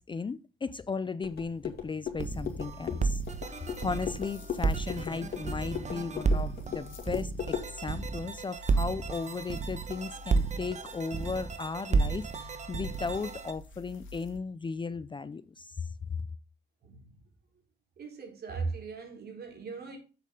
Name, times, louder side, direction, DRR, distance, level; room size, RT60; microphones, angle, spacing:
voice 1, 0.0-3.2 3.5-15.9, left 4 dB, 25° left, 0.5 m, -36 dB
sound 1, 1.2-7.7, left 8 dB, 55° left, 2.5 m, -38 dB
sound 2, 2.2-14.4, left 3 dB, 75° left, 1.9 m, -50 dB
sound 3, 2.2-13.5, right 4 dB, 35° right, 1.1 m, -32 dB
voice 2, 16.8-17.2 18.0-20.0, right 4 dB, 55° right, 4.1 m, -38 dB
7.6 x 7.0 x 3.7 m
cardioid pair, 90°, 20 cm